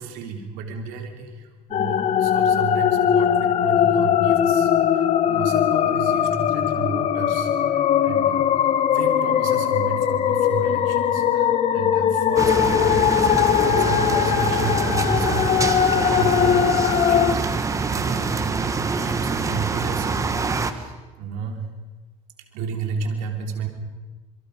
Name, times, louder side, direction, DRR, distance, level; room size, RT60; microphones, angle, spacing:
voice 1, 0.0-21.7 22.5-23.7, right 4 dB, 75° right, 3 dB, 3.4 m, -32 dB
sound 1, 1.7-17.3, left 9 dB, 50° left, 1.4 m, -20 dB
sound 2, 12.4-20.7, right 4 dB, 20° right, 1.7 m, -25 dB
27.0 x 23.5 x 5.2 m, 1.3 s
cardioid pair, 120°, 14 cm